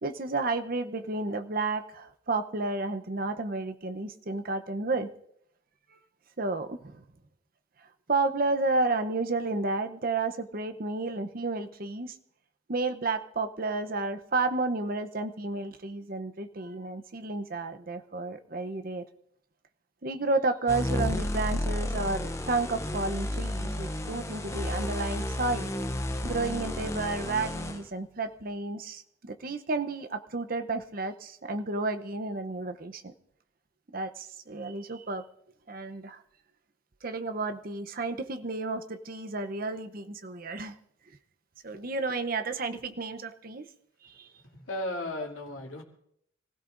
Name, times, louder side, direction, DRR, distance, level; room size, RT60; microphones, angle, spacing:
voice 1, 0.0-5.1 5.9-6.0 6.4-7.0 7.8-12.1 12.7-19.0 20.0-25.7 26.2-33.1 33.9-35.2 35.7-36.2 37.0-40.7 41.6-43.7 44.0-44.3, right 3 dB, 45° right, 9 dB, 0.7 m, -31 dB
sound 1, 20.7-27.8, left 1 dB, 15° left, 0.6 m, -32 dB
voice 2, 44.4-45.8, left 1 dB, 80° left, -1 dB, 2.7 m, -35 dB
26.0 x 16.0 x 2.6 m, 0.73 s
head